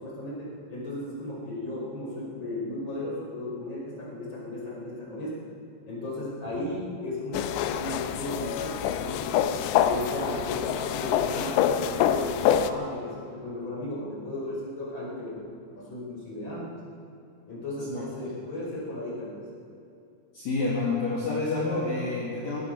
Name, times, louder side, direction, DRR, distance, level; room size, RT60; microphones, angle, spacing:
voice 1, 0.0-5.4 5.9-9.5 9.8-15.4 15.8-16.7 17.5-19.4, left 1 dB, 30° left, -5 dB, 5.2 m, -35 dB
sound 1, 7.3-12.7, left 10 dB, 90° left, 2.6 m, -26 dB
voice 2, 20.3-22.6, left 3 dB, 50° left, -6 dB, 3.2 m, -28 dB
18.5 x 13.0 x 5.9 m, 2.6 s
omnidirectional pair, 4.6 m